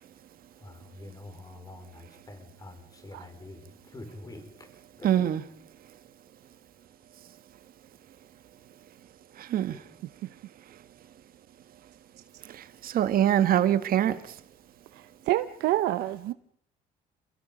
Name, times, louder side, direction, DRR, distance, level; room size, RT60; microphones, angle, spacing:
voice 1, 0.6-4.7 5.0-5.1, left 2 dB, 20° left, 4.7 m, -46 dB
voice 2, 5.0-5.4 9.4-9.8 12.5-14.2, right 11 dB, 60° right, 1.5 m, -24 dB
voice 3, 15.3-16.3, right 15 dB, 85° right, 0.9 m, -26 dB
28.5 x 22.0 x 5.2 m
cardioid pair, 110°, 17 cm